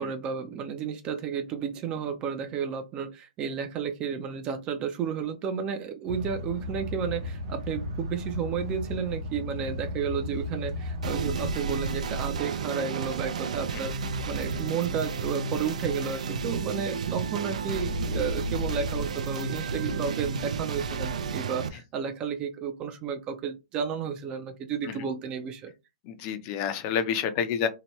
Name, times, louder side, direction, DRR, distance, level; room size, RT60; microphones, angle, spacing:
voice 1, 0.0-25.7, right 7 dB, 25° right, 0.4 m, -32 dB
sound 1, 6.1-11.5, left 2 dB, 65° right, 0.8 m, -35 dB
sound 2, 11.0-21.7, right 4 dB, 85° right, 0.4 m, -31 dB
voice 2, 26.1-27.7, left 7 dB, 35° left, 0.5 m, -28 dB
2.8 x 2.2 x 3.0 m
hypercardioid pair, 150°, 4 cm